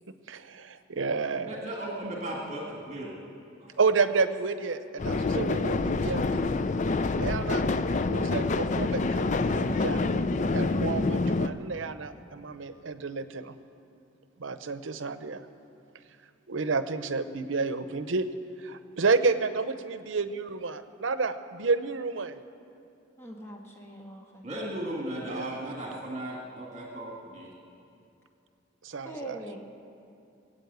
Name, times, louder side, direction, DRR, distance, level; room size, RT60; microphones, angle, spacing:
voice 1, 0.3-1.6 3.8-6.5 7.2-7.6 8.1-10.0 10.5-13.5 14.4-15.5 16.5-18.3 18.6-22.3 25.3-25.6 28.8-29.4, right 4 dB, 85° right, 11 dB, 0.7 m, -30 dB
voice 2, 1.5-3.2 3.6-3.7 24.4-27.5, right 1 dB, 35° right, -2 dB, 2.0 m, -36 dB
sound 1, 5.0-11.5, left 3 dB, 40° left, 0.4 m, -27 dB
voice 3, 23.2-24.7 29.0-29.6, right 1 dB, 15° left, -1 dB, 1.8 m, -43 dB
20.0 x 8.7 x 8.1 m, 2.6 s
head